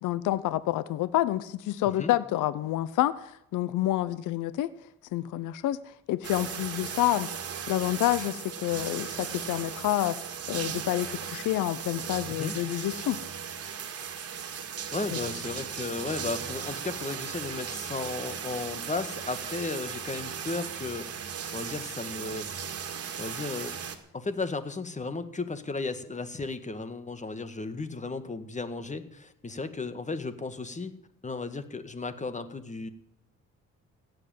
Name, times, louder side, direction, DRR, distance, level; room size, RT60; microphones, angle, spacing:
voice 1, 0.0-4.7 5.1-5.8 6.1-7.3 7.7-10.2 10.5-13.2, left 14 dB, 85° left, 16 dB, 0.7 m, -28 dB
sound 1, 6.2-24.0, right 7 dB, 55° right, 2.2 m, -37 dB
voice 2, 14.9-22.5 23.2-23.8 24.1-30.9 31.2-32.9, left 3 dB, 25° left, 11 dB, 1.7 m, -35 dB
16.5 x 8.0 x 9.2 m, 0.79 s
cardioid pair, 90°, 30 cm